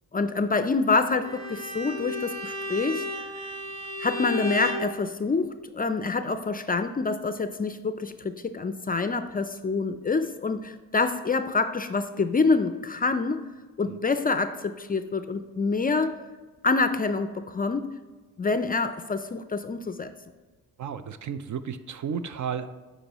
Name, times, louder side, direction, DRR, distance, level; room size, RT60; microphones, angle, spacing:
voice 1, 0.1-3.0 4.0-13.4 13.8-16.2 16.6-17.9 18.4-20.1, left 4 dB, 25° left, 10 dB, 0.4 m, -26 dB
Bowed string instrument, 1.2-4.9, left 1 dB, 90° right, 1.4 m, -33 dB
voice 2, 20.8-22.7, right 7 dB, 55° right, 11 dB, 0.5 m, -33 dB
9.8 x 4.1 x 2.9 m, 1.3 s
supercardioid pair, 60°, 37 cm